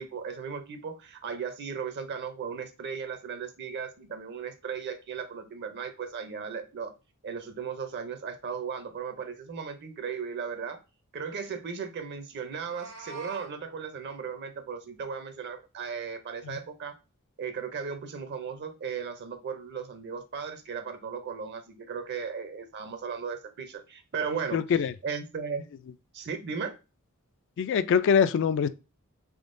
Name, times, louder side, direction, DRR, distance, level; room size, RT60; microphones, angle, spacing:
voice 1, 0.0-6.9 7.2-10.8 11.1-17.0 17.4-25.6 26.1-26.8, right 6 dB, 50° right, 0.6 m, -36 dB
Meow, 12.4-13.5, right 4 dB, 90° right, 1.6 m, -44 dB
voice 2, 24.5-24.9 27.6-28.7, left 7 dB, 60° left, 0.3 m, -23 dB
3.6 x 3.5 x 2.5 m
head